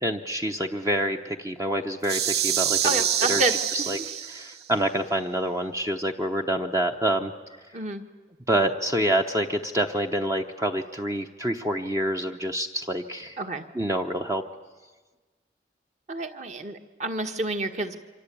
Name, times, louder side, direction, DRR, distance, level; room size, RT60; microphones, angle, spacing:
voice 1, 0.0-3.0 3.3-3.4 3.7-4.0 4.3-7.3 8.5-13.4 13.7-14.4, right 1 dB, 15° right, 3 dB, 0.9 m, -27 dB
sound 1, 2.0-4.6, right 10 dB, 60° right, 0.9 m, -26 dB
voice 2, 2.8-4.1 7.7-8.0 13.4-13.7 16.1-18.0, right 2 dB, 40° right, 6 dB, 1.7 m, -29 dB
27.5 x 25.0 x 8.6 m, 1.3 s
head